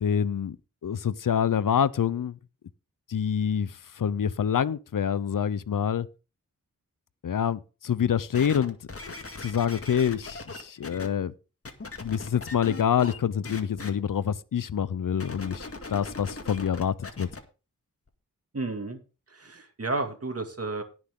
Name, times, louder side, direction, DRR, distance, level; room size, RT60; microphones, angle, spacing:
voice 1, 0.0-0.6 0.8-2.4 3.1-6.1 7.2-8.8 9.4-11.3 12.0-17.3, left 8 dB, 75° left, 0.7 m, -26 dB
sound 1, 8.3-11.1 11.6-13.2 13.4-13.9 15.1-17.4 18.1-18.2, left 3 dB, 45° left, 2.0 m, -39 dB
voice 2, 18.5-19.0 19.3-20.8, right 2 dB, 45° right, 2.4 m, -32 dB
18.0 x 6.2 x 3.8 m
cardioid pair, 45°, 33 cm